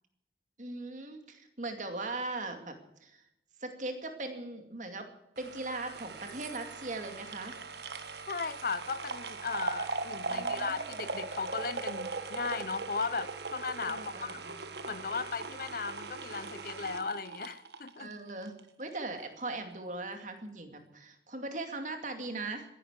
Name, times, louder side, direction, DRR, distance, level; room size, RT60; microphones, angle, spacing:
voice 1, 0.6-2.7 3.0-3.2 3.6-5.1 5.4-7.6 10.3-10.9 13.9-14.6 18.0-18.5 18.8-22.7, right 2 dB, 45° right, 6 dB, 2.3 m, -39 dB
sound 1, 5.4-18.6 18.9-19.0, right 3 dB, 65° right, 1.4 m, -39 dB
voice 2, 8.3-14.4 14.9-18.1, left 4 dB, 50° left, 15 dB, 0.7 m, -36 dB
15.0 x 11.0 x 8.1 m, 0.82 s
head